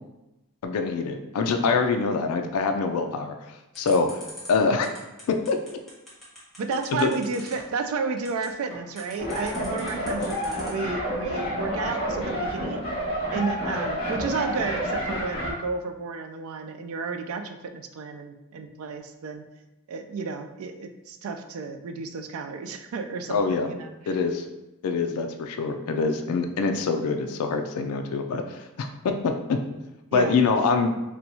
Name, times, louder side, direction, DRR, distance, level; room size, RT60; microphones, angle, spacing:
voice 1, 0.6-4.1 4.5-4.9 5.3-5.6 6.9-7.1 23.3-23.7 24.1-24.4 24.8-29.6 30.1-30.9, left 4 dB, 75° left, 5 dB, 0.3 m, -25 dB
sound 1, 3.7-10.9, left 1 dB, ahead, 1.0 m, -44 dB
voice 2, 6.6-12.8 13.3-19.4 19.9-24.2 30.1-30.4, right 4 dB, 65° right, 6 dB, 0.3 m, -32 dB
sound 2, 9.2-15.5, equal, 25° left, 1.3 m, -29 dB
4.2 x 2.2 x 2.7 m, 0.97 s
head